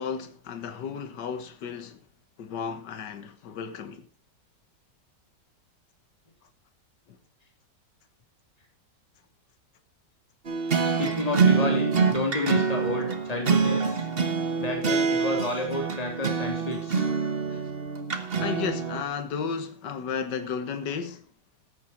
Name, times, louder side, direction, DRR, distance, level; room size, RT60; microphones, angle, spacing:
voice 1, 0.0-2.0 2.4-4.1 7.1-7.2 16.9-17.1 17.5-17.6 18.4-21.3, left 6 dB, 70° left, 1.9 m, -33 dB
sound 1, 10.5-19.0, right 5 dB, 35° right, 1.4 m, -26 dB
voice 2, 11.0-14.0 14.6-17.1, left 2 dB, 20° left, 3.3 m, -30 dB
14.0 x 9.9 x 4.4 m
omnidirectional pair, 1.9 m